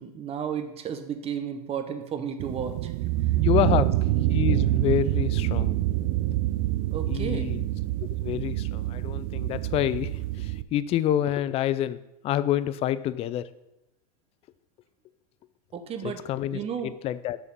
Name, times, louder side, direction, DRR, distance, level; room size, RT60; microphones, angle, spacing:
voice 1, 0.0-2.9 3.7-3.9 6.9-7.5 15.7-16.2 16.5-16.9, right 7 dB, 30° right, 8 dB, 0.8 m, -33 dB
sound 1, 2.4-10.6, right 15 dB, 50° right, 0.4 m, -26 dB
voice 2, 3.4-3.9 4.3-5.8 7.1-7.7 8.2-12.0 12.2-13.5 16.0-17.4, left 12 dB, 30° left, 15 dB, 0.4 m, -27 dB
6.8 x 5.0 x 5.3 m, 0.89 s
hypercardioid pair, 105°, 20 cm